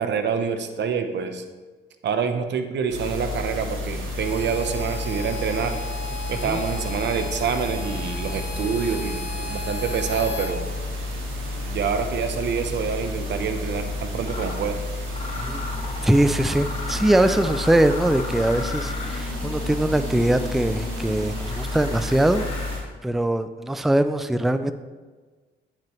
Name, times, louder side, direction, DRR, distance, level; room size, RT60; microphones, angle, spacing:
voice 1, 0.0-1.4 2.0-5.8 6.3-10.6 11.7-14.8, right 6 dB, 60° right, 7 dB, 0.9 m, -26 dB
sound 1, 2.9-22.8, left 1 dB, 85° right, 2.3 m, -31 dB
Harmonica, 4.2-10.6, left 3 dB, 80° left, 1.4 m, -36 dB
Mechanisms, 13.6-13.7 14.2-14.6 15.1-22.9, left 3 dB, 30° left, 1.9 m, -36 dB
voice 2, 16.0-22.5 23.0-24.7, right 1 dB, ahead, 11 dB, 0.3 m, -22 dB
9.2 x 7.5 x 3.1 m, 1.4 s
cardioid pair, 90°, 20 cm